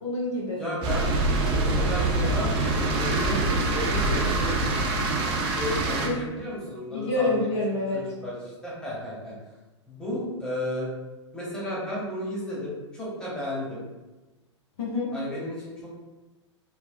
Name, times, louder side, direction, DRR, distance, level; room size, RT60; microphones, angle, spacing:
voice 1, 0.0-0.6 6.0-6.2 6.9-8.0 14.8-15.1, left 2 dB, 65° left, -3 dB, 0.7 m, -27 dB
voice 2, 0.5-1.1 1.5-4.6 5.5-7.5 7.9-9.3 9.9-10.9 11.3-13.8 15.1-16.0, left 1 dB, 5° left, -8 dB, 1.1 m, -33 dB
sound 1, 0.8-6.1, right 2 dB, 35° right, 0.5 m, -25 dB
3.2 x 2.0 x 2.5 m, 1.1 s
figure-of-eight pair, 100°, 16 cm